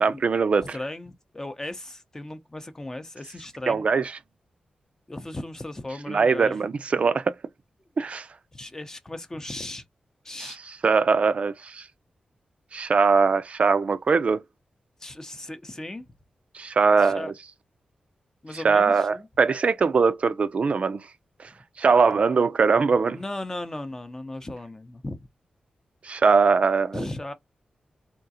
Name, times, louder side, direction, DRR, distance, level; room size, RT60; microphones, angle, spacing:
voice 1, 0.0-0.8 3.7-4.1 6.1-7.3 8.0-8.3 10.4-11.9 12.7-14.4 16.5-17.3 18.5-21.0 21.8-23.2 26.0-27.0, right 5 dB, 55° right, 0.3 m, -21 dB
voice 2, 0.7-3.9 5.1-6.6 8.5-9.8 10.2-10.6 15.0-16.0 17.0-17.3 18.4-19.3 23.1-25.2 26.9-27.3, left 1 dB, 20° left, 0.6 m, -36 dB
3.6 x 2.4 x 2.6 m
cardioid pair, 75°, 3 cm